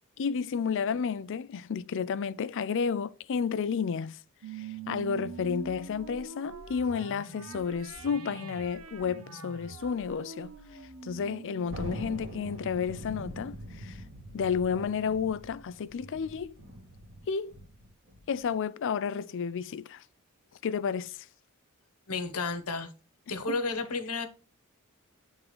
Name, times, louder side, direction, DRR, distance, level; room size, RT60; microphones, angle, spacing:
voice 1, 0.2-4.2 4.5-10.5 11.0-14.0 14.3-16.5 17.3-17.5 18.3-20.0 20.6-21.3 23.5-23.6, left 6 dB, 60° left, 0.4 m, -31 dB
sound 1, 4.4-13.2, right 5 dB, 90° right, 0.8 m, -45 dB
Thunder, 11.7-18.5, equal, 55° right, 2.2 m, -43 dB
voice 2, 22.1-22.9 23.3-24.3, left 3 dB, 85° left, 1.0 m, -32 dB
9.7 x 3.6 x 3.1 m
head